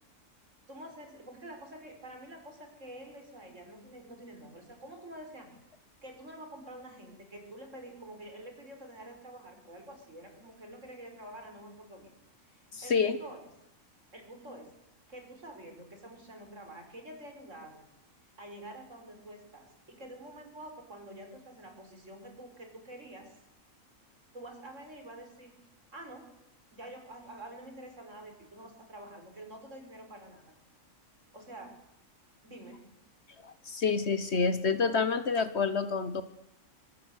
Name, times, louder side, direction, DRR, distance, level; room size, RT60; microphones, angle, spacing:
voice 1, 0.7-5.6 6.0-12.1 12.4-13.4 14.1-14.7 15.1-17.8 18.4-23.3 24.3-25.6 25.9-26.3 26.7-30.5 31.3-31.8 32.4-32.9, right 1 dB, 60° right, 5 dB, 5.2 m, -48 dB
voice 2, 12.7-13.2 33.4-36.2, left 5 dB, 50° left, 12 dB, 1.3 m, -28 dB
24.0 x 22.0 x 8.2 m, 0.87 s
omnidirectional pair, 1.5 m